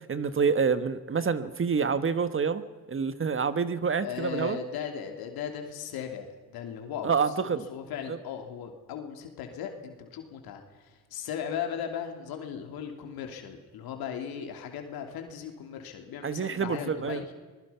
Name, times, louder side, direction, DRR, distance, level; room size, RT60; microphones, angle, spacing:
voice 1, 0.1-4.6 7.0-7.6 8.1-8.2 16.2-17.2, right 5 dB, 35° right, 12 dB, 1.4 m, -27 dB
voice 2, 4.0-7.2 7.5-17.3, left 8 dB, 80° left, 4 dB, 3.0 m, -37 dB
24.5 x 20.5 x 5.8 m, 1.4 s
cardioid pair, 90°, 36 cm